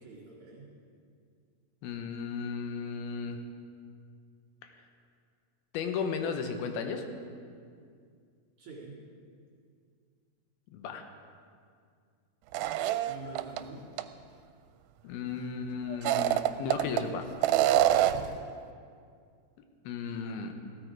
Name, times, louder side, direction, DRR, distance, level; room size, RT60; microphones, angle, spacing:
voice 1, 0.0-0.7 8.6-9.0 13.1-13.8 17.6-18.4, right 3 dB, 45° right, -3 dB, 2.8 m, -47 dB
voice 2, 1.8-3.4 5.7-7.1 10.7-11.0 15.0-17.2 19.9-20.5, left 5 dB, 90° left, 6 dB, 2.9 m, -35 dB
sound 1, 12.5-13.6 14.0-14.1 15.9-17.0 17.4-18.3, right 13 dB, 80° right, 2.3 m, -25 dB
15.0 x 13.0 x 4.8 m, 2.2 s
omnidirectional pair, 4.2 m